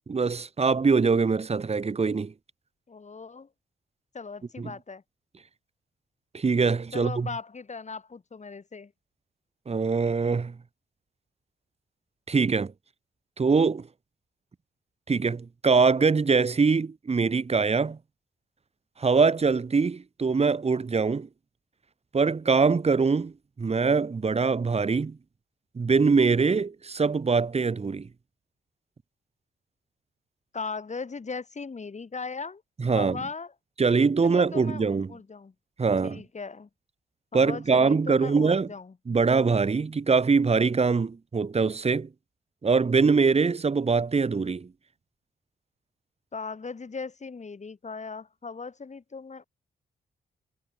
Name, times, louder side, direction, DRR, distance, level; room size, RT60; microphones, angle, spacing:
voice 1, 0.1-2.3 4.6-4.7 6.3-7.3 9.7-10.6 12.3-12.7 13.4-13.9 15.1-18.0 19.0-21.3 22.1-25.2 25.7-28.1 32.8-33.2 33.8-35.2 35.8-36.2 37.3-38.7 39.1-42.1 42.6-44.7, right 4 dB, 35° right, 1.4 m, -23 dB
voice 2, 2.9-3.5 4.1-5.0 6.9-8.9 30.5-32.6 32.9-33.5 34.2-35.5 36.0-36.7 37.3-38.9 46.3-49.4, left 4 dB, 40° left, 4.4 m, -38 dB
cardioid pair, 60°, 18 cm